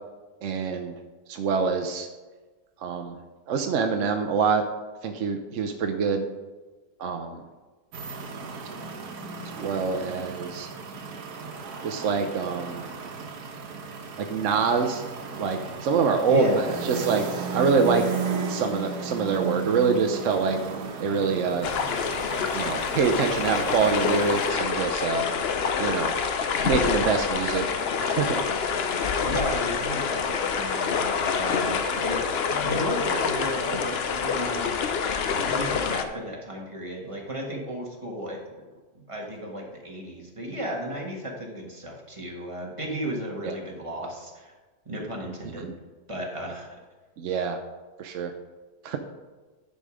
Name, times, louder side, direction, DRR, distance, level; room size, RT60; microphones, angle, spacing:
voice 1, 0.4-0.9 1.3-2.1 2.8-3.2 3.5-4.6 5.0-6.2 7.0-7.4 9.5-10.7 11.8-12.8 14.2-15.0 15.4-17.2 17.5-18.0 18.5-20.6 21.0-21.7 22.5-25.3 25.8-26.1 26.6-27.6 28.0-28.4 43.4-43.5 47.2-47.6 48.0-48.3 48.8-49.0, right 5 dB, 60° right, 5 dB, 0.9 m, -25 dB
sound 1, 7.9-24.5, right 5 dB, 85° right, 1.5 m, -35 dB
voice 2, 16.2-16.9 29.2-34.8 35.1-38.4 38.9-44.5 44.8-45.7 46.1-46.8, right 1 dB, 20° right, 0 dB, 1.4 m, -34 dB
sound 2, 21.6-36.0, left 6 dB, 55° left, 0.7 m, -27 dB
10.5 x 5.4 x 4.9 m, 1.3 s
omnidirectional pair, 1.6 m